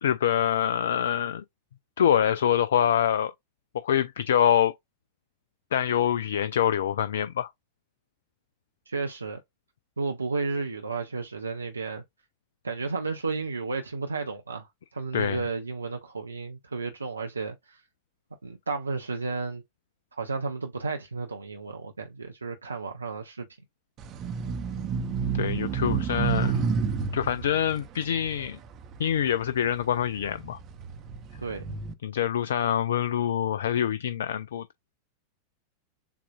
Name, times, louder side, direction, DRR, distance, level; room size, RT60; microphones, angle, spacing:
voice 1, 0.0-1.4 2.0-3.3 3.7-4.7 5.7-7.5 15.1-15.4 25.3-26.6 27.1-28.6 29.0-30.6 32.0-34.6, left 9 dB, 60° left, 0.3 m, -25 dB
voice 2, 8.9-9.4 10.0-12.0 12.6-17.8 18.4-19.6 20.2-23.5 31.4-31.7, right 4 dB, 80° right, 0.6 m, -33 dB
sound 1, 24.0-29.5 30.1-31.9, right 6 dB, 35° right, 0.7 m, -30 dB
6.9 x 2.5 x 2.3 m
figure-of-eight pair, 90°, 0 cm